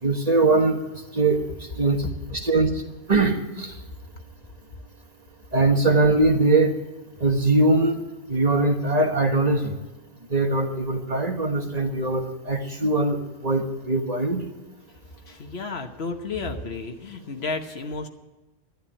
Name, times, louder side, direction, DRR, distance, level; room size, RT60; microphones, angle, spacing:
voice 1, 0.0-0.8 1.1-1.4 1.8-2.1 2.3-2.7 3.1-3.7 5.5-6.7 7.2-8.0 8.3-9.8 10.3-14.4, right 2 dB, 40° right, 4 dB, 1.5 m, -21 dB
voice 2, 15.3-18.1, left 3 dB, 80° left, 5 dB, 1.4 m, -32 dB
11.5 x 10.5 x 8.8 m, 1.1 s
omnidirectional pair, 1.1 m